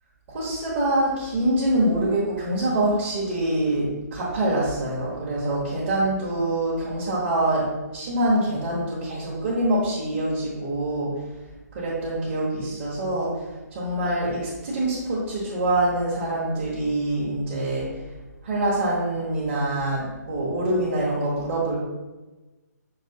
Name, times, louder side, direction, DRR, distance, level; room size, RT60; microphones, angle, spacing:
voice 1, 0.3-11.1 11.7-13.3 13.7-17.9 18.4-21.8, right 1 dB, 35° right, -9 dB, 1.2 m, -25 dB
6.1 x 3.0 x 2.8 m, 1.2 s
figure-of-eight pair, 145°, 9 cm